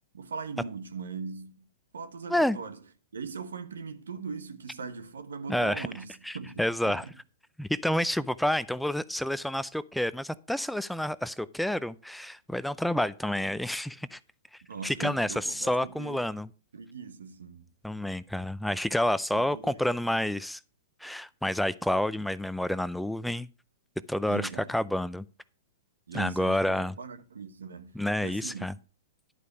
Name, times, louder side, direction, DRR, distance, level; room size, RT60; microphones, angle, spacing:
voice 1, 0.1-1.7 1.9-2.8 3.1-7.1 14.7-16.2 16.7-17.7 19.3-20.0 24.3-24.7 26.1-28.0 28.2-28.8, right 5 dB, 90° right, 1.2 m, -40 dB
voice 2, 5.5-5.9 6.2-7.0 7.6-14.2 14.8-16.5 17.8-20.6 21.0-23.5 24.1-25.2 26.1-26.9 28.0-28.7, left 1 dB, ahead, 0.4 m, -29 dB
11.0 x 5.1 x 6.7 m
hypercardioid pair, 125°, 0 cm